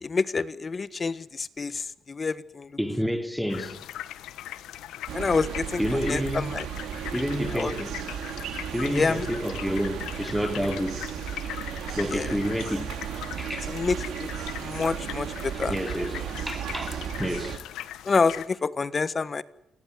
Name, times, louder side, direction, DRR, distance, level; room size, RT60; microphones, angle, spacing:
voice 1, 0.0-2.8 5.1-6.7 7.5-7.7 8.9-9.3 12.1-12.3 13.7-14.3 14.6-15.7 18.0-19.4, left 4 dB, 35° left, 1.5 m, -27 dB
voice 2, 2.8-3.9 5.8-6.5 7.1-8.0 8.7-11.1 12.0-13.0 13.4-13.7 15.6-17.7, equal, ahead, 3.6 m, -29 dB
sound 1, 3.5-18.5, left 12 dB, 85° left, 1.2 m, -40 dB
sound 2, 5.1-17.6, right 9 dB, 80° right, 2.5 m, -35 dB
29.0 x 17.5 x 9.7 m
cardioid pair, 90°, 0 cm